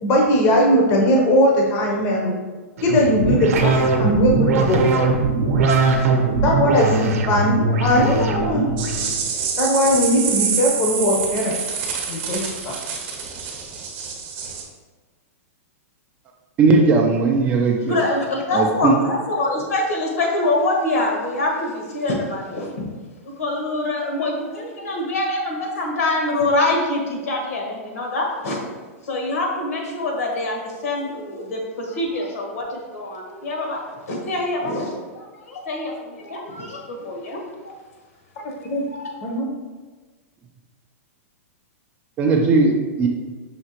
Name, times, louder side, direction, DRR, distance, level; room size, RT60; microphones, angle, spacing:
voice 1, 0.0-2.3 2.8-3.7 4.0-4.8 6.4-8.7 9.6-11.5 12.1-12.7 38.6-38.8 39.2-39.5, equal, 30° left, 0 dB, 0.6 m, -19 dB
sound 1, 2.8-9.1, right 3 dB, 75° right, 0.6 m, -20 dB
sound 2, 8.8-14.6, right 6 dB, 40° right, 0.8 m, -26 dB
voice 2, 16.6-18.0 18.5-19.0 42.2-43.1, right 3 dB, 20° right, 2 dB, 0.3 m, -17 dB
voice 3, 17.8-22.8 23.4-28.6 29.1-33.8 34.1-34.9 35.5-35.9 36.2-36.8 37.0-37.4 37.6-37.7 38.9-39.1, left 2 dB, 75° left, 0 dB, 1.2 m, -24 dB
5.7 x 2.8 x 2.9 m, 1.3 s
supercardioid pair, 160°, 8 cm